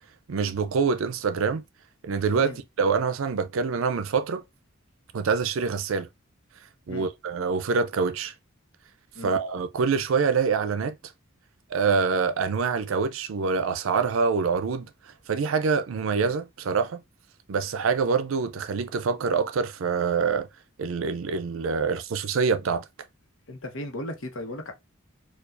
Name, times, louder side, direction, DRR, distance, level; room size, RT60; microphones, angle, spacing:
voice 1, 0.3-1.6 2.0-4.4 5.1-6.1 6.9-8.3 9.2-10.9 11.7-17.0 17.5-20.5 20.8-22.9, right 5 dB, 75° right, 0.4 m, -25 dB
voice 2, 23.5-24.7, left 1 dB, 75° left, 1.0 m, -36 dB
4.6 x 2.3 x 2.5 m
head